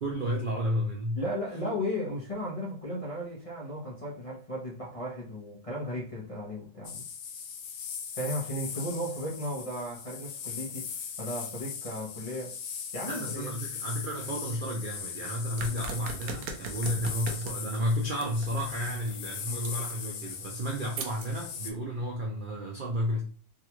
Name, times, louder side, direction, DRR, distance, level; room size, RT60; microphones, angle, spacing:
voice 1, 0.0-1.2 13.1-23.2, equal, 65° right, 0.5 m, -32 dB
voice 2, 1.1-7.0 8.2-10.9 11.2-12.6 12.9-13.5, equal, 30° left, 0.6 m, -35 dB
sound 1, 6.8-21.7, left 7 dB, 70° left, 1.0 m, -40 dB
sound 2, 15.6-21.8, right 4 dB, 80° right, 1.2 m, -42 dB
3.6 x 2.3 x 2.9 m
omnidirectional pair, 1.7 m